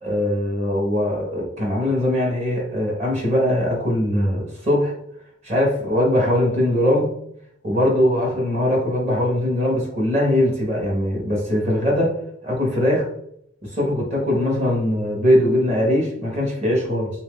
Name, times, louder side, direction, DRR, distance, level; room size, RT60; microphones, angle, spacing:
voice 1, 0.0-4.9 5.4-7.1 7.6-12.1 12.4-13.1 13.6-17.1, left 1 dB, 35° right, -1 dB, 1.2 m, -21 dB
3.1 x 2.7 x 3.6 m, 0.71 s
head